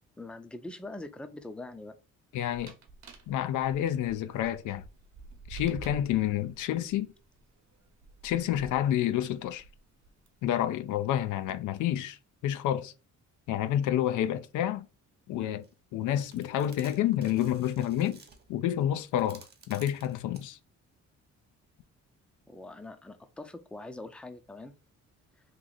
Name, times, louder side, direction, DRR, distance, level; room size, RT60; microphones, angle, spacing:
voice 1, 0.2-1.9 22.5-24.7, left 2 dB, 5° left, 0.5 m, -43 dB
voice 2, 2.3-2.7 3.3-4.8 5.5-7.1 8.2-9.6 10.4-12.2 12.4-12.9 13.5-14.9 15.3-15.7 15.9-18.2 18.5-20.6, left 11 dB, 80° left, 0.5 m, -29 dB
sound 1, 2.5-10.3 11.0-11.6, right 3 dB, 60° right, 1.0 m, -48 dB
sound 2, 15.6-15.7 16.1-20.5, right 4 dB, 35° right, 0.9 m, -54 dB
3.1 x 2.5 x 3.9 m
cardioid pair, 90°, 30 cm